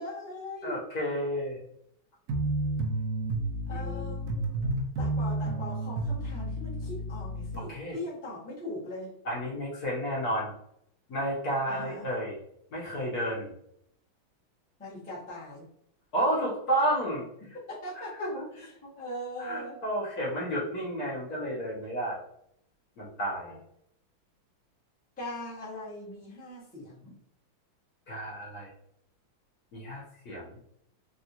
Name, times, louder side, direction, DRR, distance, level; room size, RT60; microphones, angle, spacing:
voice 1, 0.0-0.8 3.7-4.6 5.0-9.1 11.7-12.1 14.8-15.7 17.5-19.8 23.4-23.6 25.2-27.1, left 1 dB, 10° left, -8 dB, 0.6 m, -40 dB
voice 2, 0.6-1.6 3.7-4.1 7.7-8.0 9.2-10.5 11.1-12.4 12.7-13.5 16.1-17.2 18.2-18.4 19.4-22.2 23.0-23.5 28.1-28.7 29.7-30.6, equal, 60° left, -5 dB, 1.2 m, -31 dB
sound 1, 2.3-7.6, right 1 dB, 85° right, 0.8 m, -31 dB
3.5 x 2.3 x 2.8 m, 0.73 s
omnidirectional pair, 2.2 m